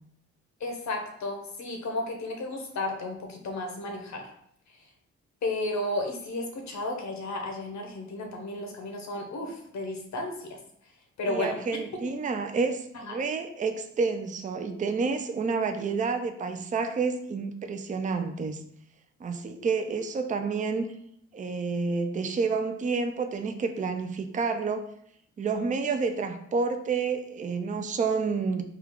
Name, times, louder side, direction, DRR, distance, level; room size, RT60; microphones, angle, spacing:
voice 1, 0.6-4.3 5.4-10.6 11.2-11.6 13.1-13.2, left 2 dB, 60° left, 3 dB, 0.9 m, -33 dB
voice 2, 11.3-18.6 19.2-20.9 21.3-24.8 25.4-28.6, right 4 dB, 25° right, 7 dB, 0.4 m, -29 dB
3.4 x 2.3 x 3.6 m, 0.69 s
cardioid pair, 70°, 31 cm